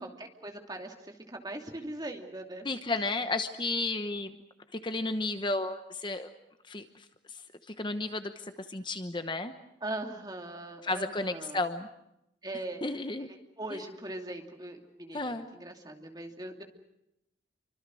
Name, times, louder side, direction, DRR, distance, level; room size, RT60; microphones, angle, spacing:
voice 1, 0.0-2.7 9.8-11.6 12.4-12.8 13.2-13.3 13.6-16.6, right 1 dB, 20° right, 3 dB, 2.7 m, -40 dB
voice 2, 2.6-4.4 4.7-6.3 6.7-7.4 7.7-9.5 10.8-11.9 12.8-13.3 13.7-13.8 15.1-15.5, left 2 dB, 25° left, 9 dB, 1.0 m, -33 dB
28.0 x 25.0 x 6.3 m, 0.84 s
head